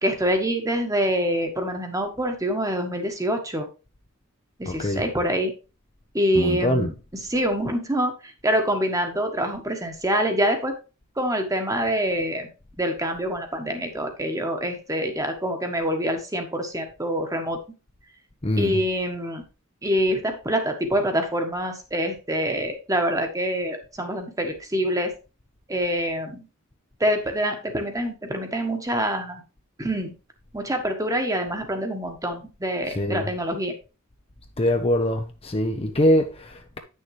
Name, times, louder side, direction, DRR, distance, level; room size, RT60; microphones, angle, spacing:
voice 1, 0.0-3.7 4.6-5.5 6.1-10.7 11.2-12.5 12.8-17.6 18.6-19.4 19.8-25.1 25.7-26.5 27.0-29.4 29.8-30.1 30.5-33.7, equal, 15° right, 1.4 m, -25 dB
voice 2, 4.7-5.0 6.4-6.9 18.4-18.8 32.9-33.3 34.6-36.8, left 1 dB, 30° left, 0.7 m, -23 dB
9.5 x 6.6 x 3.2 m
head